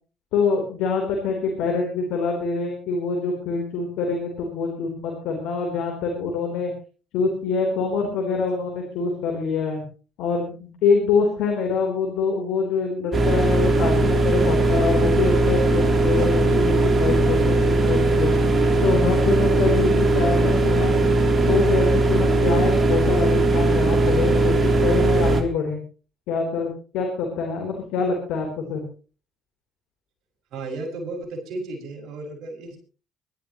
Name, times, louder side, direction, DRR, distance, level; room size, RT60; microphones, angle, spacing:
voice 1, 0.3-6.7 7.1-9.8 10.2-18.4 18.8-25.8 26.3-28.8, left 4 dB, 70° left, 1 dB, 3.8 m, -25 dB
sound 1, 13.1-25.4, right 2 dB, 35° right, 3.2 m, -19 dB
voice 2, 16.2-16.6 30.5-32.8, right 2 dB, 60° right, 2 dB, 6.3 m, -34 dB
23.5 x 13.0 x 3.1 m, 0.37 s
hypercardioid pair, 55°, 0 cm